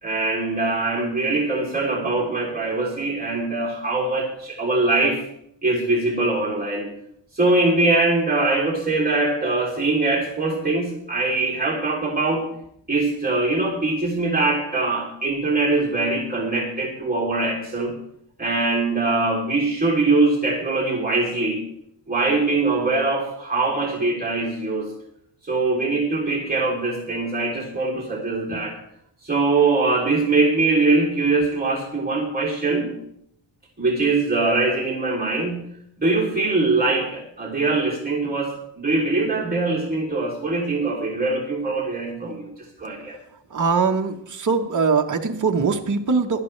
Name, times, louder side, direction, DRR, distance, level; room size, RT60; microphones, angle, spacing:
voice 1, 0.0-5.2 5.6-6.9 7.3-12.5 12.9-17.9 18.4-21.7 22.1-24.9 25.5-28.7 29.2-32.9 33.8-35.6 36.0-42.5 42.8-43.2, right 3 dB, 20° right, -3 dB, 3.3 m, -22 dB
voice 2, 43.5-46.4, right 5 dB, 40° right, 3 dB, 1.3 m, -21 dB
19.0 x 12.0 x 3.3 m, 0.73 s
wide cardioid pair, 135°, 45 cm